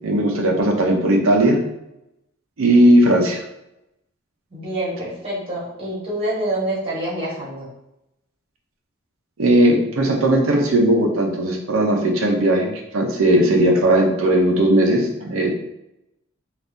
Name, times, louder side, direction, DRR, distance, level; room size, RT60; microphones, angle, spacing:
voice 1, 0.0-1.6 2.6-3.4 9.4-12.7 12.9-15.5, right 1 dB, 70° right, 1 dB, 0.6 m, -17 dB
voice 2, 4.5-7.7, right 1 dB, 25° right, -7 dB, 1.2 m, -26 dB
3.5 x 2.5 x 2.6 m, 0.87 s
head